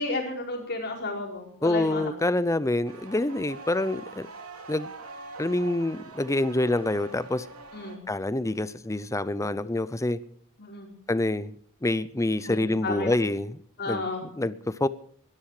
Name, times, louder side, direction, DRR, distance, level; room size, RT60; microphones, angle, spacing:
voice 1, 0.0-2.3 7.7-8.0 10.6-10.9 12.4-13.1 13.8-14.2, left 3 dB, 50° left, 4.7 m, -32 dB
voice 2, 1.6-4.3 4.7-4.9 5.4-7.5 8.1-10.2 11.1-11.5 11.8-13.6 13.9-14.0 14.3-14.9, left 1 dB, 15° left, 0.6 m, -26 dB
sound 1, 2.9-8.0, right 3 dB, 80° right, 2.7 m, -43 dB
21.0 x 13.0 x 5.0 m
head